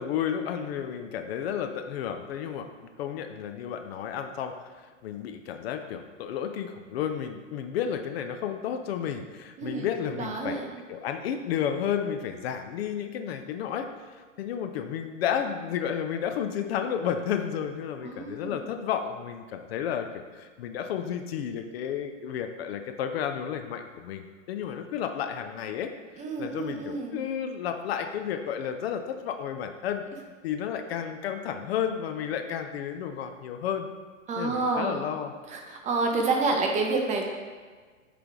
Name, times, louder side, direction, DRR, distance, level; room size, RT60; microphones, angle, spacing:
voice 1, 0.0-2.7 3.0-4.5 5.0-10.6 10.9-13.9 14.4-20.1 20.3-25.9 26.4-30.0 30.4-33.9 34.4-35.3, left 8 dB, 50° left, 6 dB, 0.6 m, -32 dB
voice 2, 9.6-9.9 10.2-10.7 18.0-18.6 26.2-27.2 34.3-35.1 35.5-37.3, right 3 dB, 20° right, 2 dB, 0.6 m, -28 dB
7.8 x 3.4 x 3.7 m, 1.5 s
hypercardioid pair, 110°, 39 cm